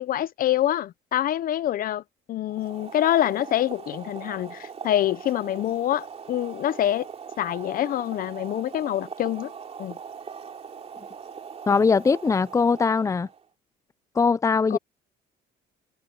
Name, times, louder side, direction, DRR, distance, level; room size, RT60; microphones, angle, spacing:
voice 1, 0.0-2.0 2.3-7.1 7.4-9.5 9.8-10.0 14.7-14.8, left 12 dB, 60° left, 0.7 m, -26 dB
Boiling, 2.5-13.5, right 6 dB, 40° right, 3.1 m, -41 dB
voice 2, 11.7-13.3 14.2-14.8, left 5 dB, 20° left, 0.6 m, -21 dB
cardioid pair, 110°, 17 cm